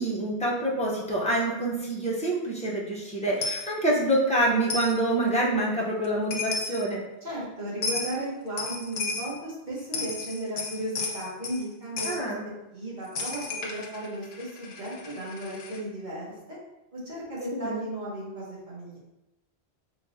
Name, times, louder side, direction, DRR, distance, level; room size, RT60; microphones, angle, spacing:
voice 1, 0.0-7.0 12.0-12.4 17.5-17.8, right 1 dB, 5° left, -5 dB, 0.8 m, -26 dB
Coin (dropping), 3.4-3.7 4.7-5.0 6.0-6.1 6.3-6.8 7.8-8.1 8.6-9.3 9.8-11.6 12.0-12.2 13.2-15.8, left 3 dB, 75° left, 0.9 m, -33 dB
voice 2, 7.2-12.3 12.7-16.6 16.9-19.0, right 1 dB, 45° right, -7 dB, 1.4 m, -35 dB
3.8 x 3.7 x 2.7 m, 0.94 s
omnidirectional pair, 1.1 m